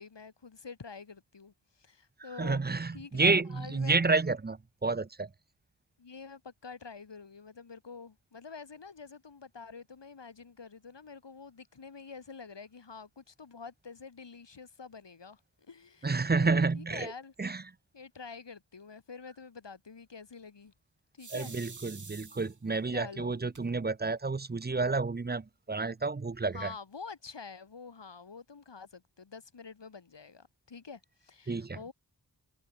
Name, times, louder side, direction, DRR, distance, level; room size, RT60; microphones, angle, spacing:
voice 1, 0.0-2.6 2.9-4.1 6.0-15.4 15.7-17.3 17.9-20.7 21.1-21.5 22.9-23.4 26.5-31.9, left 5 dB, 90° left, 7.1 m, -47 dB
voice 2, 2.4-5.3 16.0-17.1 17.4-17.6 21.3-26.7 31.5-31.8, right 3 dB, 25° right, 0.7 m, -30 dB
sound 1, 21.2-22.8 23.5-23.6 24.1-24.2 24.4-25.0, right 4 dB, 45° right, 2.1 m, -48 dB
wide cardioid pair, 70°, 42 cm